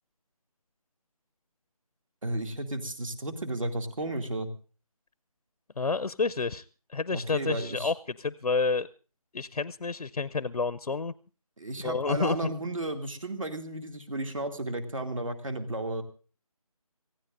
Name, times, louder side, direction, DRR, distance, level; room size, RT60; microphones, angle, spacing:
voice 1, 2.2-4.5 7.1-7.9 11.6-16.0, right 1 dB, 60° right, 6 dB, 2.4 m, -33 dB
voice 2, 5.8-6.6 6.9-8.9 9.3-11.1 11.8-12.5, left 4 dB, 85° left, 16 dB, 0.6 m, -29 dB
27.0 x 15.5 x 2.5 m, 0.37 s
figure-of-eight pair, 170°, 19 cm